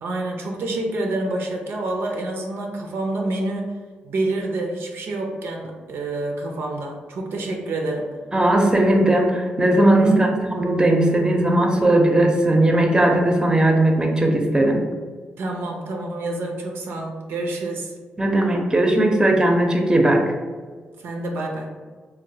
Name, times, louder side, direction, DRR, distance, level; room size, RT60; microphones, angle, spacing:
voice 1, 0.0-3.7 4.0-8.1 10.0-10.4 15.4-17.9 21.0-21.7, right 2 dB, 75° right, 1 dB, 0.4 m, -27 dB
voice 2, 8.3-14.8 18.2-20.3, right 1 dB, 20° right, 2 dB, 0.5 m, -18 dB
3.0 x 2.0 x 2.7 m, 1.5 s
supercardioid pair, 45°, 4 cm